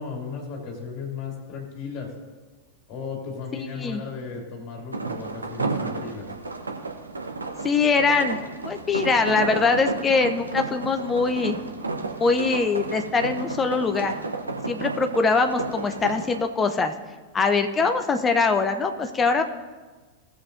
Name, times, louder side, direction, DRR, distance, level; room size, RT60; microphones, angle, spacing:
voice 1, 0.0-2.1 2.9-6.3, left 5 dB, 40° left, -1 dB, 2.7 m, -35 dB
voice 2, 3.5-4.0 7.6-11.6 12.2-14.1 14.7-16.9 17.3-19.4, left 4 dB, 20° left, 7 dB, 0.8 m, -23 dB
sound 1, 4.9-16.4, right 3 dB, 80° right, 1.0 m, -32 dB
18.0 x 7.3 x 2.7 m, 1.3 s
figure-of-eight pair, 90°, 0 cm